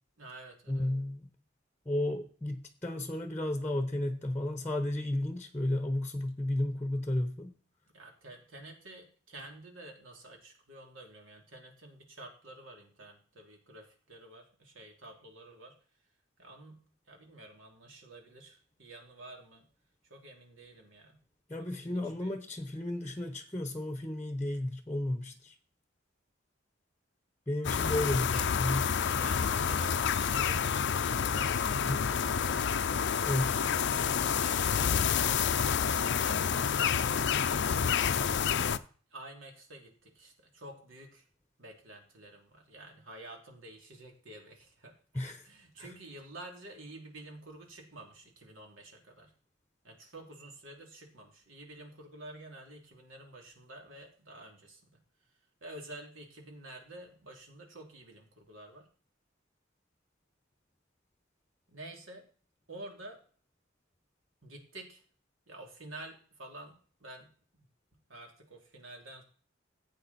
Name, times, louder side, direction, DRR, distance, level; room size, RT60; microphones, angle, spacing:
voice 1, 0.2-0.9 7.9-15.8 16.4-19.7 20.1-21.2 21.6-22.3 28.2-28.4 29.0-30.7 31.0-32.8 34.1-37.8 39.1-41.2 41.6-44.9 45.4-49.3 49.8-55.0 55.6-58.9 61.7-62.3 62.7-63.2 64.4-65.0 65.5-67.7 68.1-69.2, right 2 dB, 75° right, 2 dB, 3.2 m, -50 dB
voice 2, 0.7-1.3 1.8-7.5 21.5-25.5 27.5-28.9 31.9-32.0 33.2-33.6 45.1-45.4 45.8-45.9, left 1 dB, 10° left, 7 dB, 1.0 m, -33 dB
sound 1, 27.6-38.8, left 7 dB, 60° left, 0.6 m, -29 dB
15.0 x 8.5 x 4.3 m, 0.43 s
head